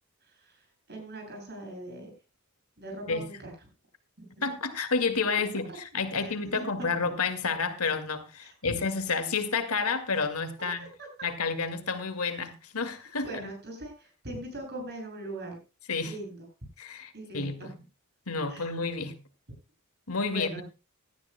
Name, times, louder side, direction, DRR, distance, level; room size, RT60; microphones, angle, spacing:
voice 1, 0.2-2.1 2.8-3.5 4.4-4.5 6.1-7.1 8.4-8.8 10.6-11.1 13.2-15.6 16.0-16.4 17.1-17.7 18.5-18.6 20.3-20.6, right 1 dB, 50° right, 7.5 m, -41 dB
voice 2, 4.4-5.7 5.9-10.8 11.2-13.3 15.9-16.1 16.8-17.7 18.3-19.2 20.1-20.6, left 4 dB, 80° left, 2.1 m, -30 dB
18.0 x 13.0 x 2.2 m
head